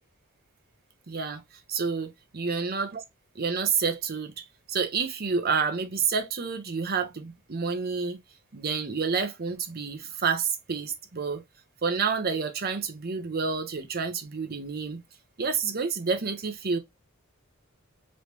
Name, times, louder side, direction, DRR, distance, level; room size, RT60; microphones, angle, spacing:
voice 1, 1.1-1.4 1.7-3.0 3.3-8.2 8.5-11.4 11.8-15.0 15.4-16.8, right 5 dB, 45° right, 0.7 m, -29 dB
3.2 x 3.1 x 2.8 m
head